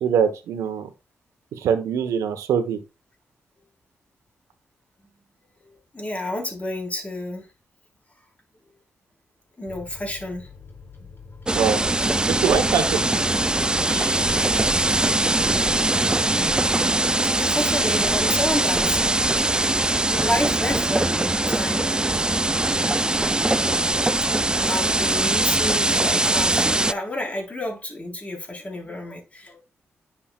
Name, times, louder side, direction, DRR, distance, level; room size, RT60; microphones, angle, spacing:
voice 1, 0.0-0.9 1.5-2.8 11.5-11.8 12.4-13.2, right 7 dB, 85° right, 1.2 m, -23 dB
voice 2, 5.6-7.5 9.6-10.5 12.5-12.7 17.2-22.7 23.1-23.4 23.7-23.8 24.2-24.3 24.7-29.6, left 1 dB, 25° left, 4.4 m, -31 dB
Microwave oven, 9.7-15.7 16.1-16.2 16.5-17.1, left 5 dB, 45° left, 4.2 m, -44 dB
sound 1, 11.5-26.9, right 2 dB, 15° right, 0.4 m, -21 dB
10.0 x 6.0 x 2.5 m
supercardioid pair, 50°, 5 cm